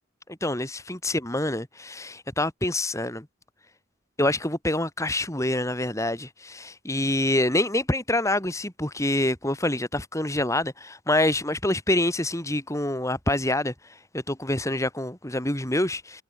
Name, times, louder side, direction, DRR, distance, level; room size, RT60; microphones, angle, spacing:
voice 1, 0.3-3.3 4.2-13.7 14.1-16.2, left 1 dB, 15° left, 3.6 m, -26 dB
head